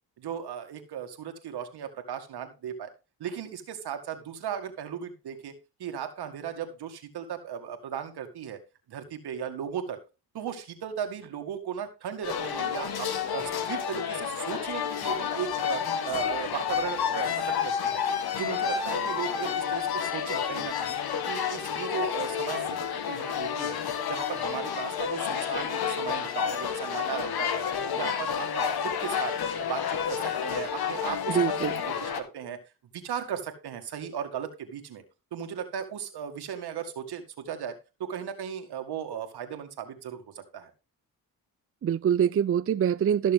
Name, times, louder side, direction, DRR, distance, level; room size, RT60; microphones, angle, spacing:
voice 1, 0.2-2.9 3.2-5.5 5.8-8.6 8.9-10.0 10.3-18.0 18.3-21.0 21.3-22.8 23.1-23.8 24.1-27.6 27.9-29.3 29.6-32.6 32.9-35.0 35.3-37.7 38.0-40.7, right 8 dB, 80° right, 2.1 m, -36 dB
sound 1, 12.2-32.2, left 8 dB, 70° left, 1.6 m, -30 dB
sound 2, 16.0-18.5, left 3 dB, 45° left, 4.5 m, -56 dB
voice 2, 31.3-31.8 41.8-43.3, right 9 dB, 35° right, 0.5 m, -24 dB
14.0 x 6.6 x 3.6 m
cardioid pair, 65°, 39 cm